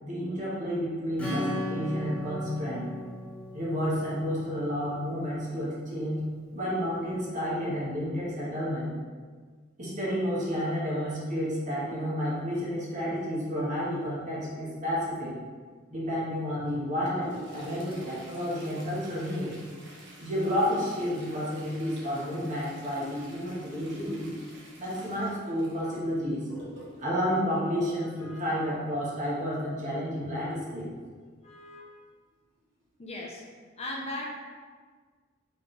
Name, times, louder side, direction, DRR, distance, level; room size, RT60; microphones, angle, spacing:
voice 1, 0.0-2.9 3.5-6.2 6.5-9.0 9.8-15.3 15.9-19.6 20.2-24.3 24.8-26.5 27.0-30.9, equal, 40° right, -7 dB, 1.4 m, -31 dB
Acoustic guitar / Strum, 1.2-5.5, left 1 dB, 10° left, 1.0 m, -36 dB
Toilet flush, 16.6-28.6 30.5-30.6 30.9-31.0 31.8-31.9 32.6-32.8 33.3-33.4, right 1 dB, 65° right, 1.0 m, -48 dB
voice 2, 28.2-28.7 31.4-31.9 33.0-33.4 33.8-34.3, left 1 dB, 35° left, -2 dB, 0.6 m, -39 dB
4.6 x 3.6 x 3.2 m, 1.5 s
head